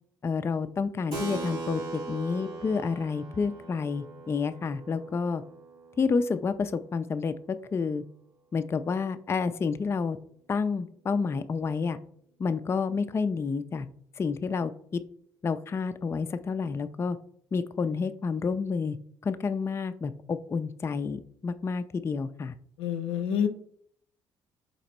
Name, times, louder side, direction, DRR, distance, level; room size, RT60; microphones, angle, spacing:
voice 1, 0.2-5.4 6.0-7.3 7.7-8.0 8.5-10.2 10.5-12.0 12.4-13.9 14.2-15.0 15.4-17.2 17.5-19.0 19.2-22.5, left 5 dB, 30° left, 10 dB, 0.3 m, -29 dB
Keyboard (musical), 1.1-7.1, right 3 dB, 85° right, 1.6 m, -40 dB
voice 2, 22.8-23.5, left 8 dB, 80° left, 9 dB, 0.5 m, -27 dB
4.2 x 2.9 x 4.1 m, 0.64 s
supercardioid pair, 65°, 9 cm